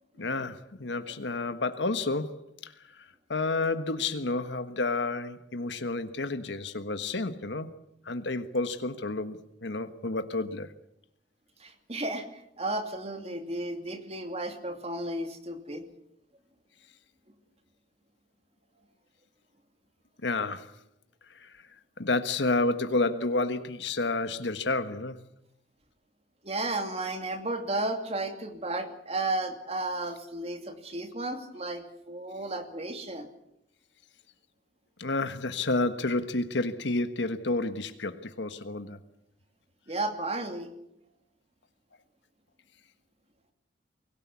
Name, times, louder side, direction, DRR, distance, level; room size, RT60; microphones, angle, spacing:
voice 1, 0.2-2.7 3.0-7.7 8.0-10.7 20.2-20.7 21.3-21.5 22.0-25.2 35.0-39.0, left 2 dB, 85° left, 9 dB, 1.4 m, -30 dB
voice 2, 11.6-15.9 26.4-33.3 39.9-40.7, right 2 dB, 35° right, 6 dB, 2.6 m, -33 dB
24.0 x 17.0 x 8.5 m, 0.80 s
head